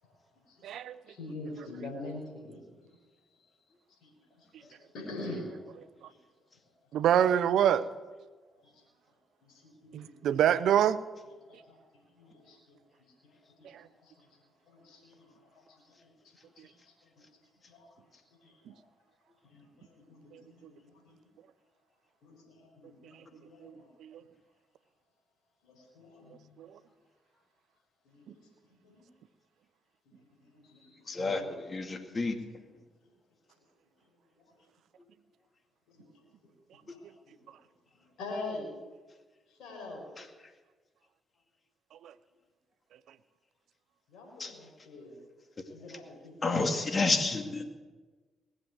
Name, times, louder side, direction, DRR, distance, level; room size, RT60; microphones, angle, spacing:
voice 1, 0.0-2.9 3.3-3.5 3.9-6.2 6.8-6.9 8.6-8.8 9.4-10.1 11.5-12.8 13.2-16.9 17.6-18.8 19.4-21.2 22.2-23.9 25.6-26.6 28.0-29.1 30.1-32.2 32.6-32.8 34.3-34.5 35.9-36.5 36.9-37.1 37.4-37.5 37.9-38.7 39.5-40.0 44.1-45.2 45.7-46.6, left 2 dB, 70° left, -1 dB, 4.8 m, -46 dB
voice 2, 0.6-1.0 6.9-7.8 9.9-11.0 13.7-13.8 20.3-20.4 23.6-23.7 24.0-24.2 26.6-26.7 42.0-42.1, right 10 dB, 70° right, 16 dB, 0.6 m, -26 dB
voice 3, 31.1-31.4 31.7-32.4 44.4-44.5 46.4-47.6, left 3 dB, 40° left, 6 dB, 2.3 m, -29 dB
20.0 x 7.7 x 8.0 m, 1.3 s
hypercardioid pair, 45°, 0 cm